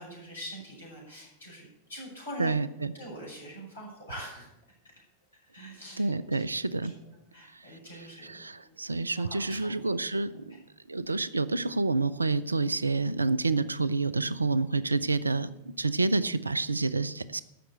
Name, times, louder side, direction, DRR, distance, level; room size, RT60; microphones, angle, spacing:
voice 1, 0.0-2.5 2.9-4.5 5.3-6.1 6.4-6.5 6.7-9.9 10.3-10.6, equal, 80° left, -3 dB, 6.1 m, -44 dB
voice 2, 2.4-2.9 6.0-6.9 7.5-7.7 8.2-10.6 10.9-17.4, right 3 dB, 80° right, 18 dB, 0.5 m, -28 dB
13.5 x 6.0 x 8.0 m, 0.89 s
figure-of-eight pair, 90°, 0 cm